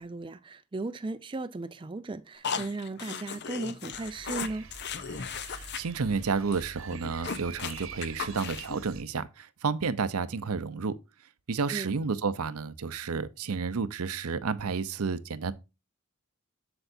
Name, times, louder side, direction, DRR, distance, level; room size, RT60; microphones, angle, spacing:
voice 1, 0.0-4.7 11.7-11.9, right 2 dB, 20° right, 0.4 m, -36 dB
sound 1, 2.4-5.8 6.1-6.2 6.5-6.6 6.9-8.8, left 6 dB, 50° left, 0.7 m, -36 dB
sound 2, 3.9-9.0, right 5 dB, 60° right, 1.0 m, -46 dB
voice 2, 5.4-10.9 11.5-15.5, right 5 dB, 85° right, 0.7 m, -31 dB
7.9 x 6.9 x 2.6 m
head